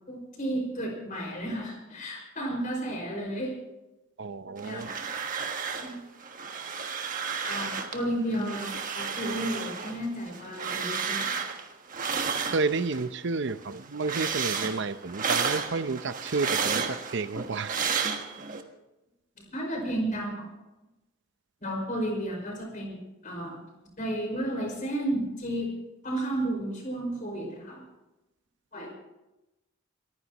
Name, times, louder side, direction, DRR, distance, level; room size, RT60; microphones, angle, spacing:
voice 1, 0.1-3.6 4.6-4.9 5.8-6.0 7.4-8.7 8.9-11.4 19.4-20.5 21.6-23.6 24.0-25.7 26.0-27.9 28.7-29.0, right 1 dB, 40° left, 1 dB, 5.3 m, -32 dB
voice 2, 4.2-4.9 12.5-17.7, right 3 dB, 55° right, 13 dB, 0.7 m, -31 dB
sound 1, 4.6-6.0 6.2-8.0 8.3-13.1 13.4-18.6, right 6 dB, 40° right, 1.4 m, -32 dB
28.0 x 15.0 x 3.0 m, 0.98 s
head